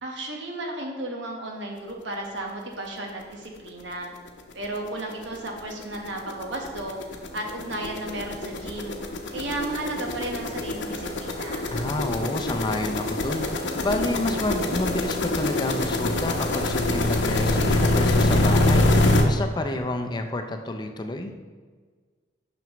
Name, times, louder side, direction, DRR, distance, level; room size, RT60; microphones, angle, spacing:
voice 1, 0.0-4.1 4.5-9.0 9.3-11.7, right 1 dB, 75° right, 1 dB, 1.3 m, -34 dB
sound 1, 3.8-3.9 4.3-4.4 4.6-19.2, left 2 dB, 80° left, 0.8 m, -24 dB
voice 2, 11.7-18.9 19.2-21.3, left 2 dB, 25° left, 5 dB, 0.5 m, -29 dB
9.0 x 6.1 x 3.0 m, 1.5 s
head